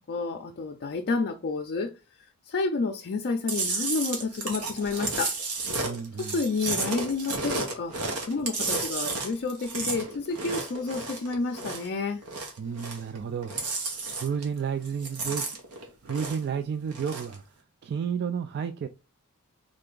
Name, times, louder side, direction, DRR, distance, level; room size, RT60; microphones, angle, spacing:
voice 1, 0.1-1.9 2.5-5.3 6.2-12.2, left 3 dB, 45° left, 0.4 m, -30 dB
Chewing mastication, 3.5-11.9 12.2-13.2 13.4-14.6 14.9-16.5 16.9-17.4, right 3 dB, 85° right, 1.3 m, -32 dB
voice 2, 5.8-6.4 12.6-15.5 16.0-17.4 17.8-18.9, right 7 dB, 50° right, 0.3 m, -32 dB
3.8 x 3.3 x 3.7 m
head